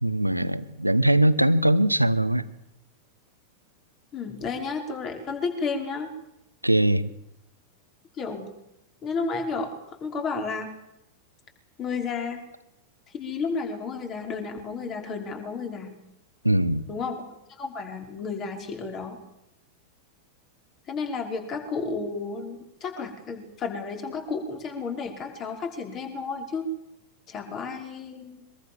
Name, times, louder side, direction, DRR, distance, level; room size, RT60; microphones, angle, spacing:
voice 1, 0.0-2.4 6.6-7.1 16.4-16.9, right 1 dB, 85° right, 14 dB, 1.1 m, -21 dB
voice 2, 4.1-6.1 8.2-8.5 9.0-9.7 10.0-10.7 11.8-12.4 13.1-15.9 16.9-17.2 17.6-19.2 20.9-26.6 27.3-28.4, left 4 dB, 30° left, 5 dB, 5.5 m, -32 dB
25.0 x 22.0 x 7.4 m, 0.84 s
figure-of-eight pair, 90°, 0 cm